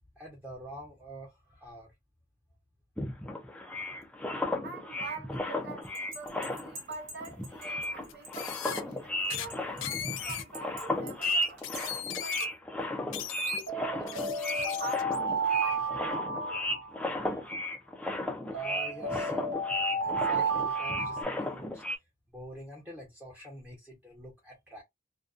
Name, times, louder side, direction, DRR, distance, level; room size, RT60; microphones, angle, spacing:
voice 1, 0.2-1.9 18.5-19.4 19.9-21.8 22.3-24.8, equal, 10° right, 0.8 m, -46 dB
sound 1, 3.0-6.9 7.2-22.0, left 1 dB, 5° left, 0.4 m, -35 dB
voice 2, 4.6-12.9 13.5-16.6, right 4 dB, 55° right, 1.0 m, -46 dB
sound 2, 5.9-7.9 8.2-8.3 8.7-8.8 9.5-9.9 10.5-11.1 11.6-12.0 13.7-17.4 18.5-21.2, right 3 dB, 80° right, 1.0 m, -33 dB
sound 3, 6.3-6.4 8.0-8.8 9.3-9.5 9.8-10.4 11.2-12.5 13.1-13.7 14.1-15.2, left 10 dB, 80° left, 0.4 m, -38 dB
2.5 x 2.2 x 2.4 m
head